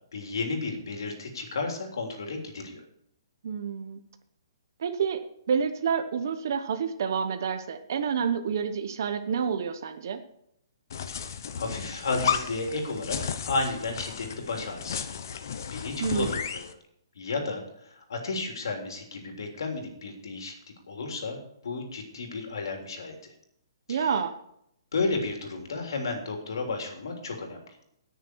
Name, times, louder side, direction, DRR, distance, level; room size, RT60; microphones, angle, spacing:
voice 1, 0.1-2.8 11.1-15.1 15.7-16.7 17.2-17.6 17.9-20.5 20.9-23.1 23.9-24.1 24.9-27.6, left 3 dB, 65° left, 2 dB, 3.4 m, -33 dB
voice 2, 3.4-4.0 4.8-5.2 5.5-10.2 16.0-16.3 23.9-24.3, right 6 dB, 50° right, 8 dB, 1.0 m, -28 dB
sound 1, 10.9-16.7, left 7 dB, 50° left, 1.0 m, -34 dB
18.0 x 6.8 x 4.6 m, 0.74 s
hypercardioid pair, 175°, 2 cm